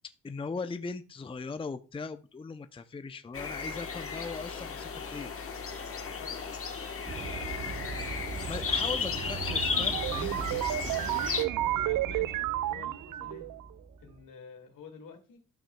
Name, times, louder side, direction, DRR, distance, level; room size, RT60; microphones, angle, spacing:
voice 1, 0.2-5.3 8.5-10.9, left 4 dB, 15° left, 10 dB, 0.5 m, -39 dB
sound 1, 3.3-11.4, left 5 dB, 45° left, 1.2 m, -34 dB
voice 2, 6.0-6.6 11.6-13.5 14.0-15.4, left 5 dB, 80° left, 3 dB, 2.1 m, -49 dB
sound 2, 7.0-14.2, right 5 dB, 35° right, 0.7 m, -40 dB
sound 3, 9.5-13.6, right 15 dB, 75° right, 0.5 m, -32 dB
12.5 x 6.0 x 2.2 m, 0.35 s
cardioid pair, 70°, 32 cm